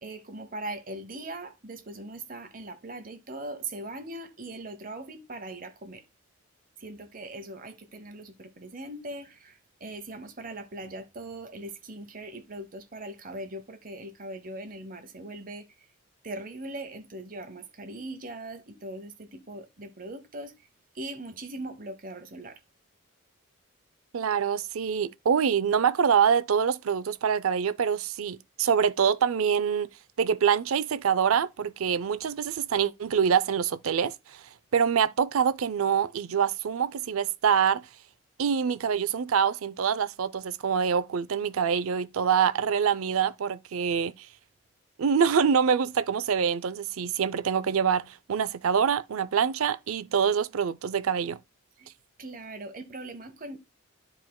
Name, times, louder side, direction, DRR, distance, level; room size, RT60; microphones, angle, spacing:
voice 1, 0.0-6.0 6.8-15.7 16.2-20.6 20.9-22.6 51.8-51.9 52.2-53.6, right 2 dB, 40° right, 1.0 m, -40 dB
voice 2, 24.1-29.9 30.2-34.4 34.7-37.9 38.4-44.3 45.0-51.4, right 7 dB, 85° right, 0.5 m, -25 dB
12.5 x 4.5 x 2.2 m
head